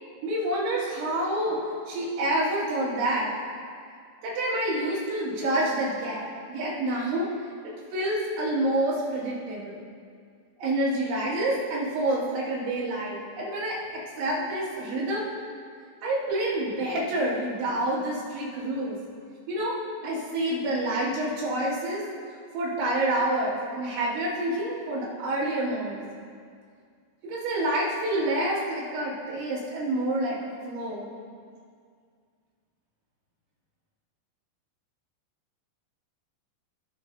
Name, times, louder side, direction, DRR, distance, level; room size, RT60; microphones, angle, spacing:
voice 1, 0.2-3.3 4.2-7.3 7.9-9.8 10.6-15.3 16.0-19.0 19.5-22.0 22.5-26.0 27.2-31.1, right 1 dB, 70° right, -8 dB, 4.4 m, -28 dB
18.0 x 6.2 x 2.7 m, 2.1 s
omnidirectional pair, 5.7 m